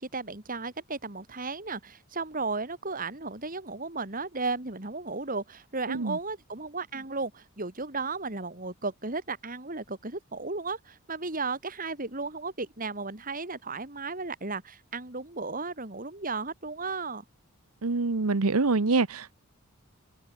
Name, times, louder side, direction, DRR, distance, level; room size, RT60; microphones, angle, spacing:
voice 1, 0.0-17.2, right 3 dB, 40° right, 2.9 m, -34 dB
voice 2, 17.8-19.3, right 3 dB, 85° right, 1.0 m, -25 dB
head